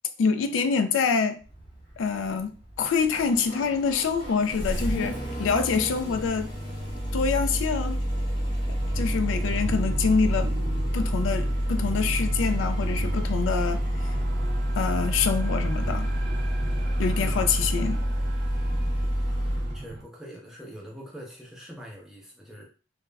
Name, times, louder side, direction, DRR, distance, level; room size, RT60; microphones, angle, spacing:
voice 1, 0.2-1.4 2.0-6.5 7.1-8.0 8.9-10.5 10.9-14.1 14.8-16.1 17.0-18.0, left 5 dB, 90° left, 0.3 m, -26 dB
Engine starting, 1.4-19.8, equal, 25° left, 0.9 m, -28 dB
sound 1, 8.1-20.0, right 2 dB, 50° right, 0.4 m, -40 dB
voice 2, 17.2-17.8 19.7-22.6, equal, ahead, 0.6 m, -44 dB
2.3 x 2.0 x 3.2 m
head